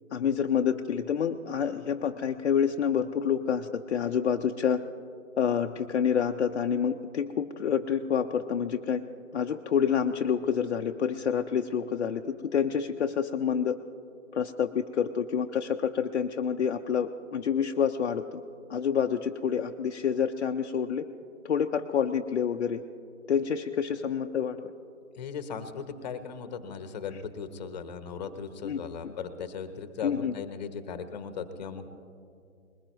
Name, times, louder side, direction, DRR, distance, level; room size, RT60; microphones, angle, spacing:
voice 1, 0.1-4.8 5.4-9.0 9.3-13.8 14.3-18.4 18.7-21.1 21.4-22.8 23.3-24.7 28.6-29.1 30.0-30.3, left 7 dB, 55° left, 4 dB, 0.6 m, -28 dB
voice 2, 25.1-31.9, left 6 dB, 30° left, 10 dB, 1.0 m, -38 dB
21.0 x 20.0 x 3.1 m, 2.5 s
hypercardioid pair, 150°, 41 cm